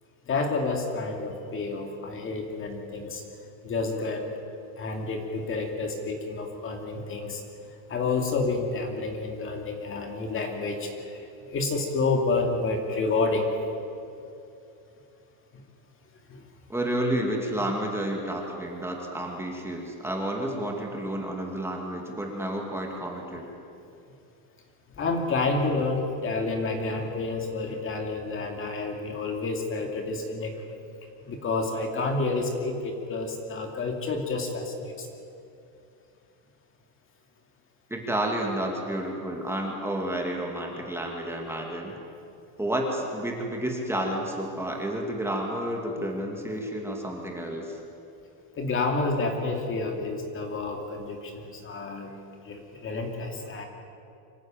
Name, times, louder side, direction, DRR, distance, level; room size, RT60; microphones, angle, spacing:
voice 1, 0.3-3.2 3.6-4.3 4.8-7.4 7.9-13.5 16.3-16.4 25.0-30.6 31.2-35.1 48.6-52.1 52.4-53.7, left 3 dB, 30° left, 3 dB, 2.5 m, -29 dB
voice 2, 16.7-23.5 37.9-42.0 42.6-47.8, right 1 dB, 5° right, 0 dB, 2.3 m, -30 dB
25.0 x 14.0 x 9.0 m, 2.7 s
cardioid pair, 150°, 44 cm